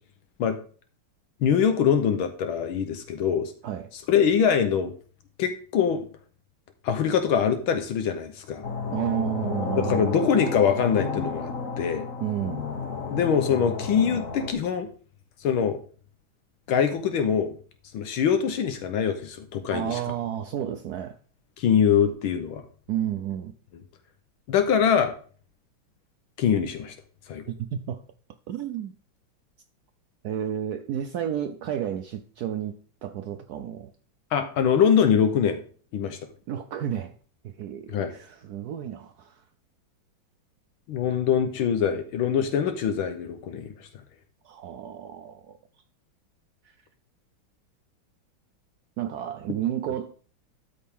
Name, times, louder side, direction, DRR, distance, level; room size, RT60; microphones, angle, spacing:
voice 1, 1.4-3.5 3.9-4.9 5.4-6.1 6.8-8.6 9.8-12.1 13.1-14.9 15.4-15.8 16.7-17.6 17.9-20.0 21.6-22.6 24.5-25.1 26.4-26.9 27.3-27.4 34.3-35.6 35.9-36.2 37.9-38.1 40.9-43.9, left 7 dB, 80° left, 1.6 m, -23 dB
sound 1, 8.6-14.5, left 4 dB, 45° left, 1.4 m, -32 dB
voice 2, 8.9-10.1 12.2-12.7 19.7-21.2 22.9-23.5 27.5-28.0 28.5-28.9 30.2-32.8 33.0-33.9 36.5-37.2 37.4-39.4 44.4-45.6 49.0-50.1, right 10 dB, 80° right, 0.8 m, -31 dB
13.0 x 5.2 x 3.6 m
omnidirectional pair, 2.2 m